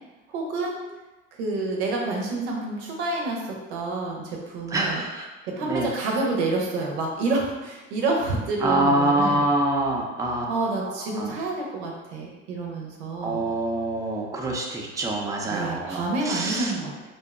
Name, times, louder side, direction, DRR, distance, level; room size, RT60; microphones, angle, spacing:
voice 1, 0.3-0.8 1.4-3.4 3.7-5.0 5.5-9.5 10.5-13.4 15.5-17.1, right 2 dB, 90° right, -1 dB, 0.6 m, -28 dB
voice 2, 4.7-5.2 5.7-5.9 8.6-11.3 13.2-16.7, right 1 dB, 10° right, -1 dB, 0.4 m, -25 dB
2.6 x 2.1 x 2.3 m, 1.1 s
hypercardioid pair, 75°, 33 cm